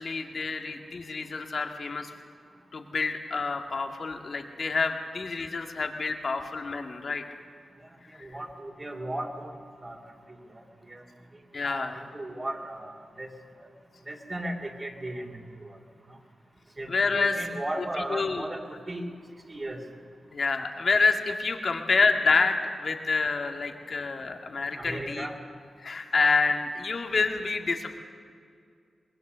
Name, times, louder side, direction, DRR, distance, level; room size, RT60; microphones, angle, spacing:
voice 1, 0.0-2.1 2.7-7.2 8.2-8.3 11.5-12.0 16.9-17.4 18.1-18.4 20.3-25.3 25.8-28.0, left 4 dB, 60° left, 4 dB, 2.0 m, -27 dB
voice 2, 8.2-10.0 10.5-11.0 11.6-13.3 14.1-15.8 16.1-16.2 16.8-19.1 19.5-19.8 24.8-25.4, right 1 dB, 35° right, 0 dB, 3.2 m, -36 dB
24.5 x 20.5 x 6.9 m, 2.3 s
cardioid pair, 50°, 0 cm